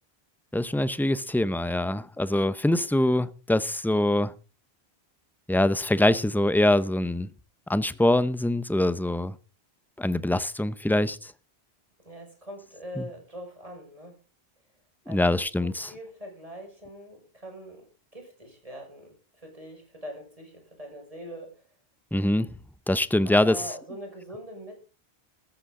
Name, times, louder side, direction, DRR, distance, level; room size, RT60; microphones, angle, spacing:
voice 1, 0.5-4.3 5.5-7.3 7.7-9.3 10.0-11.3 13.0-13.1 15.1-15.9 22.1-22.5 22.9-23.5, left 1 dB, ahead, 0.5 m, -24 dB
voice 2, 12.0-14.2 15.1-17.9 18.1-21.5 23.3-24.7, equal, 35° right, 5.9 m, -42 dB
14.0 x 14.0 x 3.8 m
omnidirectional pair, 1.1 m